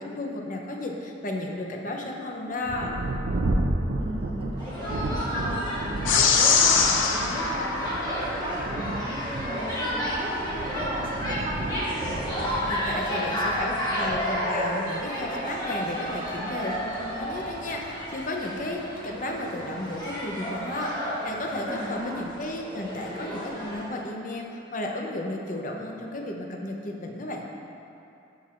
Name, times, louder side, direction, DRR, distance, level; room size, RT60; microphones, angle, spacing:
voice 1, 0.0-3.0 12.7-27.4, left 1 dB, 45° left, 1 dB, 0.7 m, -33 dB
Thunder, 2.6-18.7 19.5-19.6 20.1-20.6, right 1 dB, 60° right, 0.5 m, -33 dB
voice 2, 3.9-12.0 21.7-22.2, right 1 dB, 30° right, -5 dB, 0.8 m, -36 dB
sound 1, 4.6-23.9, equal, 20° left, 1.5 m, -32 dB
sound 2, 6.1-8.7, left 5 dB, 85° left, 0.6 m, -23 dB
11.0 x 6.1 x 2.5 m, 2.7 s
head